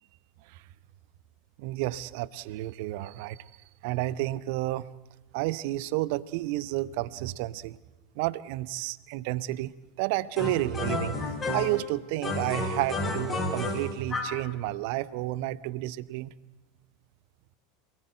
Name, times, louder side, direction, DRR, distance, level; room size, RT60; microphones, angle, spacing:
voice 1, 1.6-3.5 3.8-4.9 5.3-7.8 8.2-9.7 10.0-16.3, right 17 dB, 55° right, 19 dB, 0.8 m, -31 dB
sound 1, 10.4-11.9 12.2-14.4, left 2 dB, 25° left, 4.4 m, -31 dB
27.0 x 19.5 x 7.9 m, 1.1 s
figure-of-eight pair, 80°, 0 cm